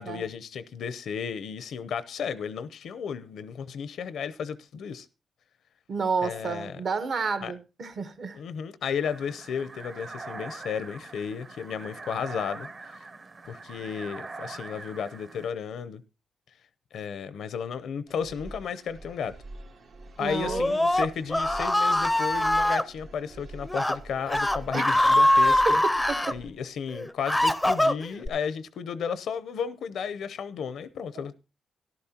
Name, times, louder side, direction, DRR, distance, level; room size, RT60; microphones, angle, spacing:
voice 1, 0.0-5.1 6.2-6.7 7.4-7.5 8.3-13.0 13.5-16.0 16.9-19.3 20.2-25.8 26.3-31.4, left 7 dB, 85° left, 0.6 m, -33 dB
voice 2, 5.9-8.4 20.2-20.7 24.7-24.8 26.1-26.4, right 5 dB, 60° right, 1.1 m, -30 dB
sound 1, 9.0-15.5, right 3 dB, 40° right, 0.9 m, -42 dB
sound 2, 18.1-26.5, right 2 dB, 85° right, 2.2 m, -46 dB
Screaming, 20.4-22.8 23.6-23.9 24.3-26.3 26.9-28.3, left 1 dB, 10° left, 0.5 m, -23 dB
13.5 x 11.5 x 2.9 m
cardioid pair, 110°, 0 cm